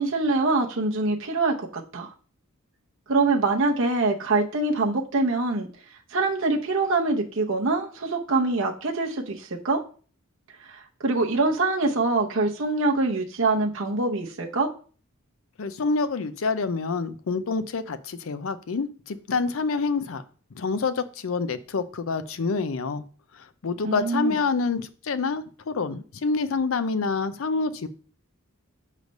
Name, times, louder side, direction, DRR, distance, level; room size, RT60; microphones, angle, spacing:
voice 1, 0.0-2.1 3.1-5.7 6.1-9.8 10.6-14.7 23.8-24.4, right 3 dB, 65° right, 1 dB, 0.7 m, -24 dB
voice 2, 15.6-20.2 20.5-23.0 23.3-27.9, left 4 dB, 70° left, 13 dB, 0.5 m, -27 dB
6.5 x 3.2 x 5.2 m, 0.41 s
head